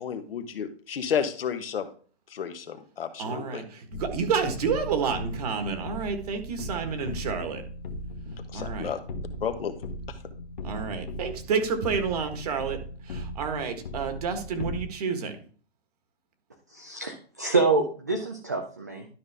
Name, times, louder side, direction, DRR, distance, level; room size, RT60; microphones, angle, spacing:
voice 1, 0.0-1.9 2.3-3.6 8.5-9.0 9.4-9.7, left 7 dB, 60° left, 8 dB, 1.3 m, -31 dB
voice 2, 3.2-7.6 8.5-8.9 10.6-12.8 13.1-15.3, right 5 dB, 35° right, 7 dB, 1.6 m, -29 dB
sound 1, 3.9-14.8, left 1 dB, 45° left, 1.2 m, -38 dB
voice 3, 16.7-19.1, right 3 dB, 15° right, 3 dB, 0.4 m, -26 dB
12.0 x 5.5 x 3.5 m, 0.41 s
hypercardioid pair, 165°, 33 cm